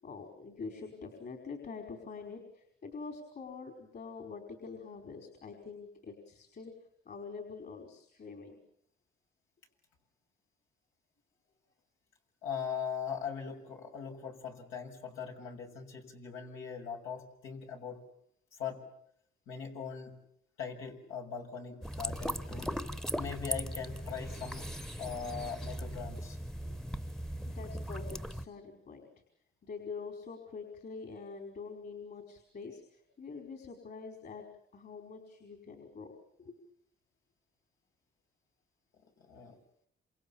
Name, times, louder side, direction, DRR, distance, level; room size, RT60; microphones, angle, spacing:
voice 1, 0.0-6.7 7.0-8.6 26.6-26.8 27.4-29.1 29.6-34.4 34.7-36.1 36.4-36.6, left 4 dB, 50° left, 5 dB, 5.1 m, -45 dB
voice 2, 12.4-18.0 18.6-18.8 19.5-20.2 20.6-22.7 23.1-24.7 25.0-26.4 39.3-39.6, left 6 dB, 85° left, 1 dB, 6.8 m, -40 dB
sound 1, 21.8-28.5, equal, ahead, 1.1 m, -38 dB
28.0 x 28.0 x 7.3 m, 0.71 s
cardioid pair, 90°, 20 cm